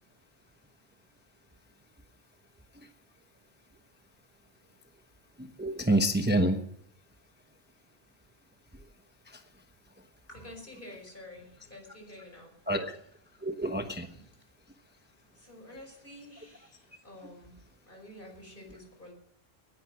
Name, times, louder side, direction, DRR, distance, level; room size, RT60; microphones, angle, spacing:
voice 1, 5.4-6.6 9.3-9.4 12.7-13.0 13.4-14.1, right 1 dB, 10° right, 6 dB, 1.0 m, -28 dB
voice 2, 10.3-12.5 14.1-14.2 15.3-19.1, left 1 dB, 50° left, 2 dB, 5.4 m, -49 dB
18.5 x 11.0 x 6.4 m, 0.67 s
omnidirectional pair, 1.1 m